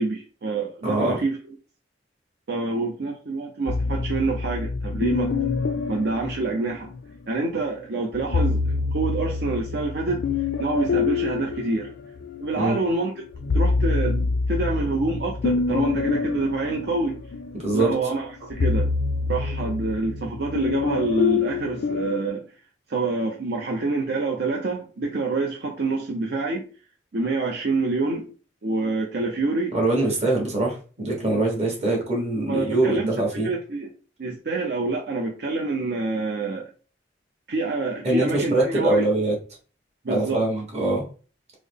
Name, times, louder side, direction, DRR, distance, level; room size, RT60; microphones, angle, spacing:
voice 1, 0.0-1.4 2.5-5.3 5.9-6.9 7.3-8.6 8.9-10.2 10.6-11.9 12.4-13.1 13.5-17.2 17.7-18.9 19.3-22.4 22.9-26.7 27.1-28.3 28.6-29.8 32.4-33.1 33.4-33.9 34.2-36.7 37.5-39.0 40.0-40.4, right 3 dB, 65° right, 0.6 m, -26 dB
voice 2, 0.8-1.2 12.6-12.8 17.6-17.9 29.7-33.5 38.0-39.3 40.1-41.0, right 2 dB, 40° right, 1.3 m, -23 dB
sound 1, 3.7-7.2 8.1-12.6 13.0-22.3, left 4 dB, 80° left, 0.4 m, -26 dB
3.7 x 2.0 x 3.5 m
head